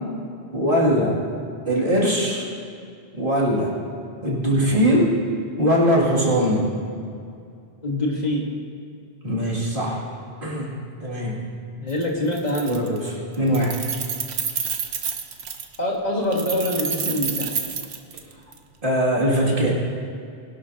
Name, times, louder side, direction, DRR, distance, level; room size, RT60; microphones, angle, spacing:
voice 1, 0.5-1.2 1.7-2.5 3.1-3.7 4.2-5.1 5.6-6.7 9.2-10.0 10.4-11.5 12.6-13.8 18.8-19.7, equal, 55° right, -5 dB, 2.7 m, -21 dB
voice 2, 7.8-8.6 11.8-12.9 15.8-17.5, left 1 dB, 40° left, -2 dB, 1.6 m, -25 dB
Keys jangling, 11.9-12.0 12.3-13.1 13.3-15.8 16.3-18.6, right 7 dB, 75° right, 1.1 m, -29 dB
21.5 x 11.5 x 2.8 m, 2.4 s
omnidirectional pair, 1.1 m